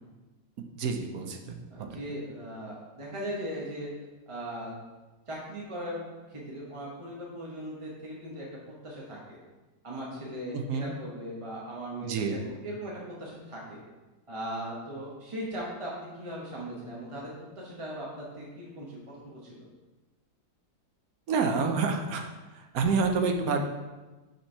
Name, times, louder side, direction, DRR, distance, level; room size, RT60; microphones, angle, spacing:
voice 1, 0.8-1.9 10.5-10.9 12.0-12.4 21.3-23.7, right 4 dB, 65° right, 4 dB, 1.1 m, -28 dB
voice 2, 1.7-3.9 4.3-4.7 5.3-6.0 6.3-9.4 9.8-12.9 13.2-13.8 14.3-17.3 17.6-19.7, equal, 25° right, -4 dB, 0.8 m, -39 dB
5.7 x 4.4 x 5.5 m, 1.2 s
omnidirectional pair, 1.9 m